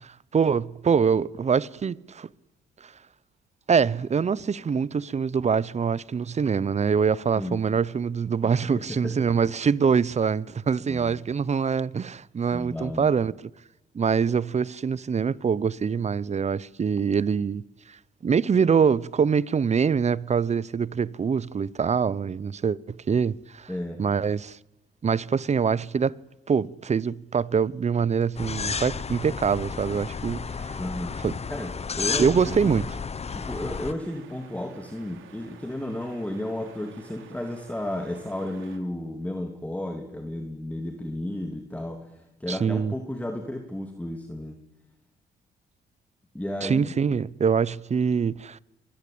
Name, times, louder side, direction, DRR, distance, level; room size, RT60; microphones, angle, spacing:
voice 1, 0.0-2.3 2.8-2.9 3.7-13.3 13.9-17.6 18.2-23.7 24.0-24.6 25.0-26.2 26.5-30.8 31.2-31.3 32.2-32.9 42.5-42.9 46.6-48.6, right 6 dB, 35° right, 0.8 m, -24 dB
voice 2, 10.9-11.2 12.5-13.1 23.7-24.0 30.8-31.2 31.5-32.4 32.6-32.7 33.3-44.5 46.3-46.9, left 1 dB, 5° left, 2.9 m, -33 dB
sound 1, 28.4-33.9, left 5 dB, 30° left, 1.2 m, -32 dB
sound 2, 33.3-38.8, right 9 dB, 85° right, 3.4 m, -51 dB
24.5 x 20.5 x 8.7 m
cardioid pair, 90°, 20 cm